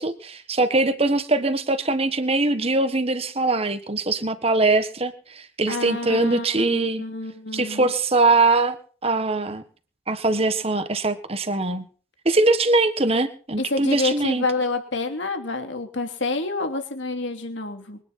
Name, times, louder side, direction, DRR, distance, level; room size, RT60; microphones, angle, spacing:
voice 1, 0.0-7.0 7.5-8.8 9.0-9.6 10.1-11.8 12.2-14.4, right 2 dB, 30° right, 9 dB, 1.5 m, -22 dB
voice 2, 5.7-7.9 13.6-18.0, left 3 dB, 60° left, 5 dB, 3.0 m, -28 dB
24.0 x 10.0 x 4.3 m, 0.42 s
head